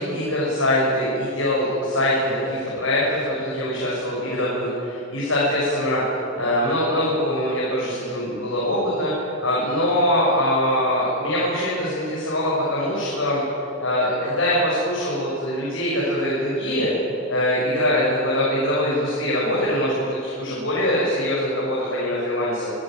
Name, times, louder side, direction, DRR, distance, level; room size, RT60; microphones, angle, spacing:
voice 1, 0.0-9.1 9.4-13.4 13.8-16.9 17.3-22.7, left 1 dB, 90° left, -6 dB, 6.7 m, -23 dB
26.0 x 15.0 x 9.3 m, 2.9 s
head